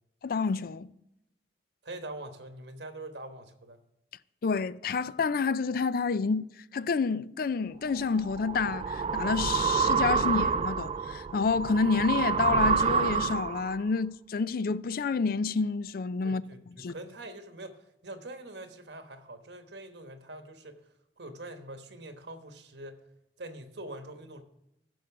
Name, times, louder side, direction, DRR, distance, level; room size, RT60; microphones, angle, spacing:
voice 1, 0.2-0.9 4.4-6.5 6.7-16.4 16.8-16.9, left 4 dB, 55° left, 0.4 m, -29 dB
voice 2, 1.8-3.8 16.2-20.8 21.2-23.0 23.4-24.4, right 1 dB, 70° right, 1.2 m, -44 dB
sound 1, 8.0-13.7, right 5 dB, 35° right, 0.3 m, -28 dB
14.5 x 6.3 x 5.9 m
head